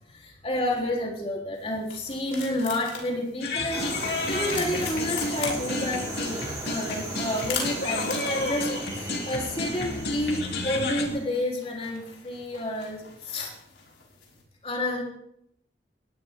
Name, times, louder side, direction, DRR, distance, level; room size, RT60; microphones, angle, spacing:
voice 1, 0.1-13.5 14.6-15.0, left 1 dB, 35° left, -1 dB, 3.9 m, -30 dB
sound 1, 1.5-14.4, left 5 dB, 85° left, 5.6 m, -41 dB
sound 2, 3.4-11.1, left 2 dB, 65° left, 2.7 m, -31 dB
sound 3, 3.7-11.2, right 2 dB, 20° right, 6.5 m, -37 dB
20.0 x 15.5 x 3.8 m, 0.73 s
head